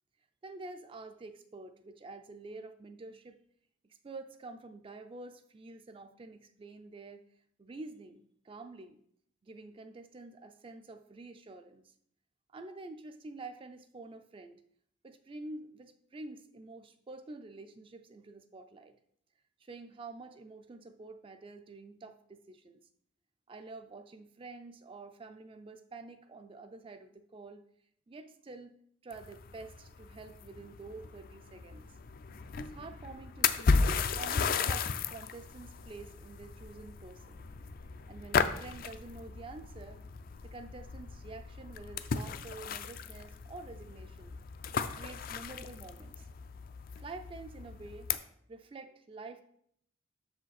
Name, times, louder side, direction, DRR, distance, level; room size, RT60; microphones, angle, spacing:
voice 1, 0.4-3.4 3.8-7.2 7.6-9.0 9.4-11.9 12.5-14.6 15.0-19.0 19.6-22.8 23.5-27.7 28.1-28.7 29.0-31.9 32.6-33.8 34.2-37.5 38.1-40.1 40.4-44.3 45.0-46.3 47.0-48.1 48.5-49.4, right 3 dB, 25° right, 7 dB, 0.3 m, -48 dB
sound 1, 29.1-48.2, left 5 dB, 45° left, 0.4 m, -35 dB
6.6 x 5.0 x 4.0 m, 0.68 s
head